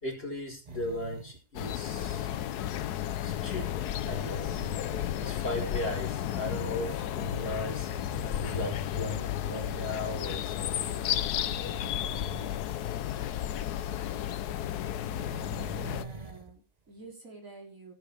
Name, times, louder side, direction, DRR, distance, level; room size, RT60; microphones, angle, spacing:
voice 1, 0.0-2.3 3.2-4.6 5.2-8.1 8.4-11.2, left 1 dB, 40° left, 0 dB, 5.0 m, -37 dB
sound 1, 0.7-1.4 3.7-5.2 6.5-6.6 7.4-8.9 9.6-9.7 11.1-12.7 13.0-13.2 14.8-16.5 17.1-17.2, right 4 dB, 30° right, 1.0 m, -46 dB
sound 2, 1.6-16.1, left 11 dB, 85° left, 1.3 m, -33 dB
voice 2, 15.8-17.9, right 2 dB, 60° right, -1 dB, 4.5 m, -48 dB
17.0 x 9.2 x 3.4 m, 0.36 s
omnidirectional pair, 1.6 m